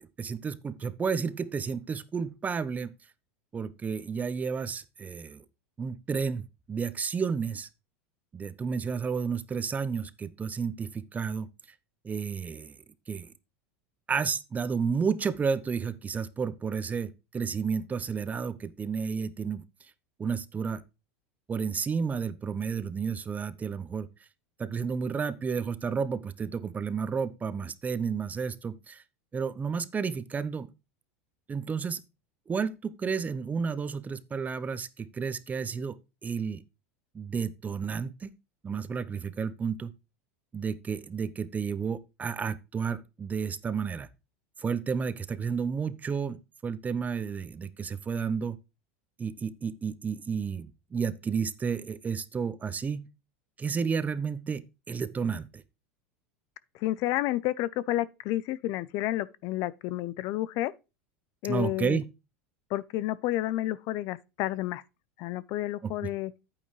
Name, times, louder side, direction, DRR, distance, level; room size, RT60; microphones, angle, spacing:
voice 1, 0.0-2.9 3.5-5.4 5.8-7.7 8.3-11.5 12.0-12.8 13.1-13.3 14.1-19.6 20.2-20.8 21.5-24.1 24.6-29.0 29.3-30.7 31.5-32.0 32.5-36.0 36.2-36.6 37.1-38.3 38.6-39.9 40.5-44.1 44.6-48.6 49.2-53.1 53.6-55.6 61.4-62.0 65.8-66.1, right 6 dB, 20° right, 0.8 m, -31 dB
voice 2, 56.8-60.7 61.4-62.0 62.7-64.8 65.2-66.3, left 15 dB, 55° left, 0.5 m, -30 dB
8.9 x 8.6 x 3.2 m
hypercardioid pair, 105°, 7 cm